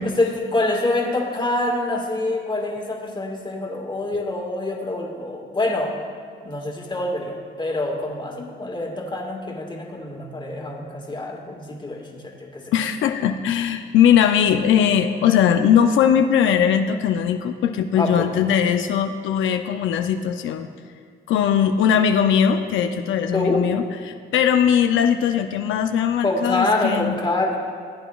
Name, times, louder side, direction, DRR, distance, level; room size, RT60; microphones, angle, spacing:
voice 1, 0.0-5.9 6.4-12.7 17.9-18.2 23.3-23.6 26.2-27.6, left 2 dB, 25° left, 0 dB, 1.6 m, -25 dB
voice 2, 12.7-20.7 21.3-27.1, left 8 dB, 80° left, 6 dB, 0.5 m, -19 dB
15.5 x 8.9 x 2.3 m, 2.1 s
cardioid pair, 90°, 20 cm